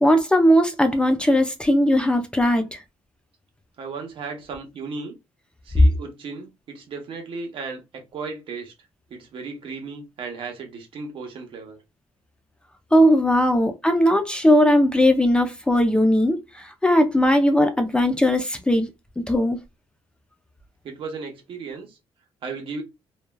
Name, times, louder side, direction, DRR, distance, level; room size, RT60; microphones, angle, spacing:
voice 1, 0.0-2.8 12.9-18.9 19.2-19.6, equal, 10° left, 0.4 m, -19 dB
voice 2, 3.8-5.2 5.6-8.7 9.1-11.8 20.8-22.0 22.4-22.8, right 4 dB, 65° right, 0.9 m, -35 dB
3.0 x 2.3 x 2.2 m
cardioid pair, 100°, 10 cm